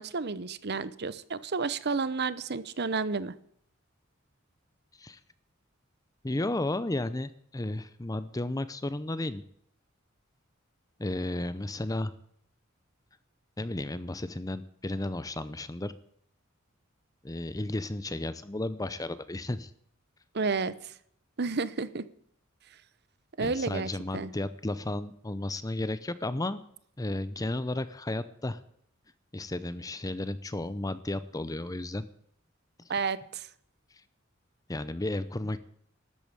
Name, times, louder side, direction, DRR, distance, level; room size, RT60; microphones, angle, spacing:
voice 1, 0.0-3.3 20.3-20.9 21.4-22.1 23.4-24.3 32.9-33.5, right 4 dB, 55° right, 16 dB, 0.8 m, -31 dB
voice 2, 6.2-9.4 11.0-12.1 13.6-15.9 17.2-19.7 23.4-26.6 27.0-28.6 29.3-32.1 34.7-35.6, left 2 dB, 15° left, 14 dB, 0.6 m, -33 dB
13.0 x 8.7 x 8.9 m, 0.66 s
head